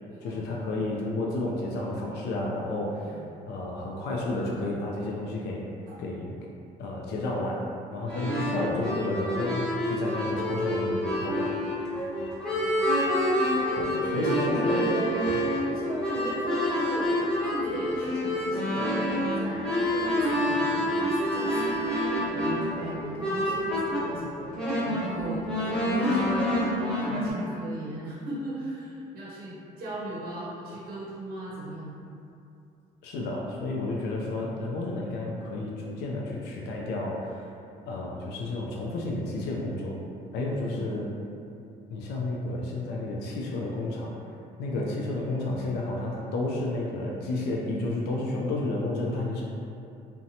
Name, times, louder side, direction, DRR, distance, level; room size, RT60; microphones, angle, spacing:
voice 1, 0.2-5.6 6.0-6.3 6.8-7.6 7.9-11.5 13.8-14.8 33.0-37.5 37.9-40.0 40.3-41.1 41.9-44.1 44.6-49.4, left 2 dB, 75° left, -3 dB, 0.4 m, -31 dB
voice 2, 3.0-3.3 14.1-15.2 15.6-17.1 17.4-21.9 22.3-25.5 25.8-32.0 40.6-40.9 44.8-44.9, right 1 dB, 60° right, -6 dB, 0.6 m, -37 dB
sound 1, 8.1-24.0 24.4-27.3, equal, 5° left, 1.0 m, -27 dB
2.7 x 2.1 x 2.6 m, 2.6 s
cardioid pair, 110°, 17 cm